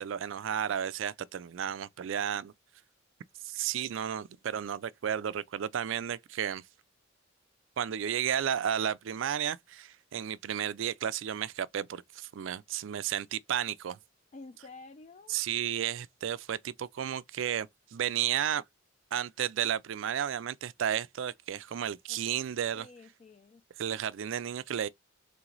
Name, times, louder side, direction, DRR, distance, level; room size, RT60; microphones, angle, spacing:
voice 1, 0.0-2.5 3.4-6.6 7.8-14.0 15.3-18.6 19.1-22.9 23.8-24.9, right 9 dB, 65° right, 0.4 m, -33 dB
voice 2, 14.3-15.4 22.1-22.2 22.7-23.6, left 3 dB, 35° left, 0.3 m, -50 dB
3.3 x 3.0 x 3.8 m
head